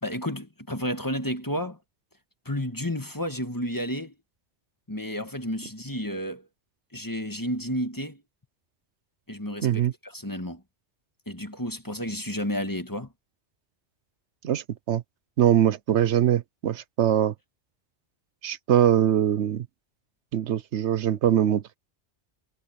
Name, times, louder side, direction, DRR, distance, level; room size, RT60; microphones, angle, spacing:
voice 1, 0.0-1.8 2.4-4.1 4.9-6.5 6.9-8.2 9.3-10.6 11.3-13.1, equal, 20° left, 1.6 m, -31 dB
voice 2, 9.6-9.9 14.4-15.0 15.4-17.3 18.4-19.7 20.3-21.8, right 10 dB, 85° right, 1.1 m, -22 dB
omnidirectional pair, 1.1 m